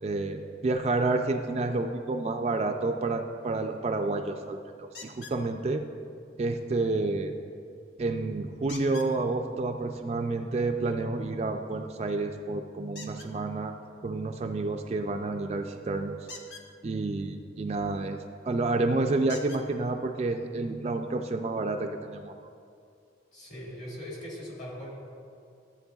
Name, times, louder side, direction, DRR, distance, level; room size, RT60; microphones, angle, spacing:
voice 1, 0.0-5.9 6.4-7.3 8.0-13.7 14.0-16.2 16.8-18.2 18.4-22.3, right 3 dB, 35° right, 5 dB, 0.3 m, -29 dB
sound 1, 4.9-5.4 8.7-9.1 12.9-13.3 16.2-16.7 18.3-18.4 19.3-19.6 20.6-20.7 21.2-21.3, left 4 dB, 65° left, 0.8 m, -44 dB
voice 2, 23.3-24.9, equal, 40° left, -5 dB, 2.3 m, -40 dB
14.0 x 8.1 x 2.3 m, 2.4 s
head